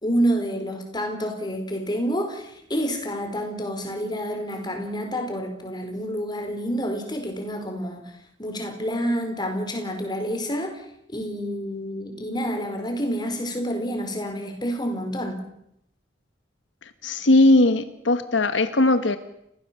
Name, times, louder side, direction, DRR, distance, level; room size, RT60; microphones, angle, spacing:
voice 1, 0.0-8.1 8.4-10.8 11.1-15.4, equal, 25° left, 5 dB, 4.5 m, -28 dB
voice 2, 16.8-19.2, left 2 dB, 70° left, 10 dB, 1.3 m, -19 dB
30.0 x 16.0 x 7.5 m, 0.79 s
head